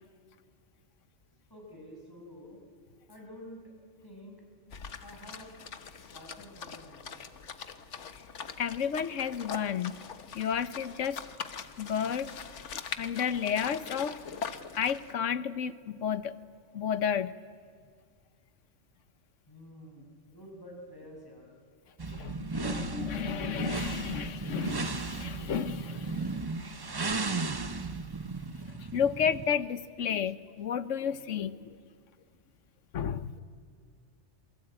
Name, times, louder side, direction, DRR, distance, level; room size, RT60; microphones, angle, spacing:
voice 1, 1.5-2.6 3.1-3.7 4.0-4.4 5.0-5.6 6.1-7.2 19.5-21.6, equal, 15° left, -1 dB, 6.2 m, -49 dB
sound 1, 4.7-15.1, left 6 dB, 75° left, 1.5 m, -42 dB
voice 2, 8.6-10.0 10.3-11.2 11.8-12.3 12.9-14.2 14.8-16.3 16.7-17.3 22.1-26.4 28.8-31.8 32.9-33.3, left 8 dB, 90° left, 14 dB, 1.3 m, -32 dB
sound 2, 22.0-29.6, right 3 dB, 25° right, 0.7 m, -35 dB
28.0 x 23.0 x 8.9 m, 2.1 s
omnidirectional pair, 1.2 m